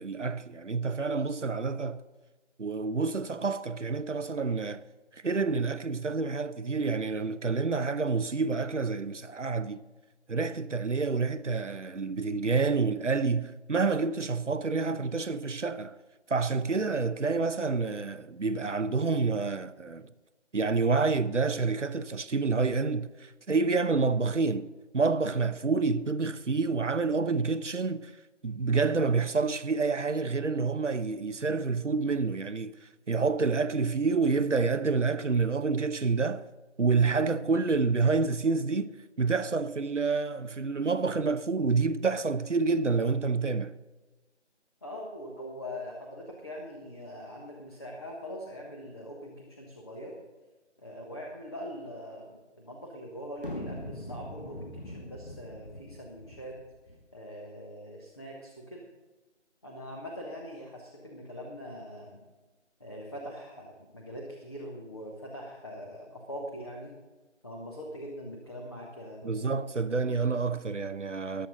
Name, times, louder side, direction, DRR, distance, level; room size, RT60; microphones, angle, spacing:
voice 1, 0.0-2.0 2.6-4.8 5.1-9.8 10.3-16.0 16.3-20.1 20.5-28.1 28.4-36.5 36.8-43.8 69.2-71.5, right 4 dB, 80° right, 0.9 m, -28 dB
voice 2, 44.8-50.1 50.8-56.5 57.1-58.8 59.6-62.2 62.8-66.9 67.4-69.4, equal, 20° left, 1.2 m, -42 dB
sound 1, 53.4-57.0, left 1 dB, 45° left, 1.9 m, -42 dB
23.0 x 8.1 x 3.9 m
figure-of-eight pair, 160°, 36 cm